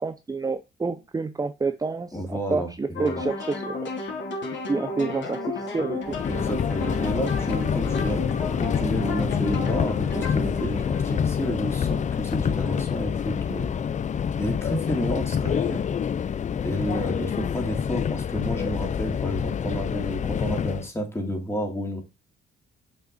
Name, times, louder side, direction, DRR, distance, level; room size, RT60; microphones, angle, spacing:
voice 1, 0.0-3.9 4.5-6.2, right 4 dB, 20° right, 0.6 m, -29 dB
voice 2, 2.1-3.2 6.2-13.7 14.4-15.8 16.6-22.0, equal, 15° left, 2.9 m, -31 dB
sound 1, 2.9-12.0, left 3 dB, 65° left, 3.0 m, -33 dB
Subway metro underground, 6.1-20.9, left 7 dB, 35° left, 0.5 m, -27 dB
6.5 x 5.8 x 4.0 m
cardioid pair, 90°, 20 cm